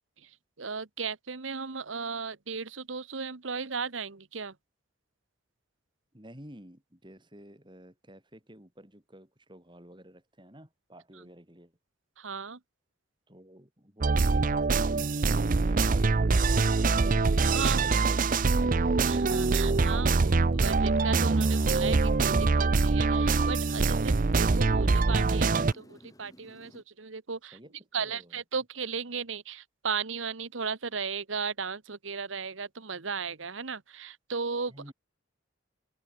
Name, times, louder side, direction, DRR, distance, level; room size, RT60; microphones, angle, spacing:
voice 1, 0.3-4.5 12.2-12.6 17.5-18.3 19.0-27.6 27.9-34.7, right 5 dB, 85° right, 1.3 m, -36 dB
voice 2, 6.1-11.7 13.3-15.2 27.5-27.7 28.0-28.4 34.7-34.9, equal, 25° right, 7.0 m, -51 dB
sound 1, 14.0-25.7, right 3 dB, 45° right, 0.6 m, -24 dB
Motorcycle, 19.6-26.8, equal, 20° left, 7.8 m, -57 dB
head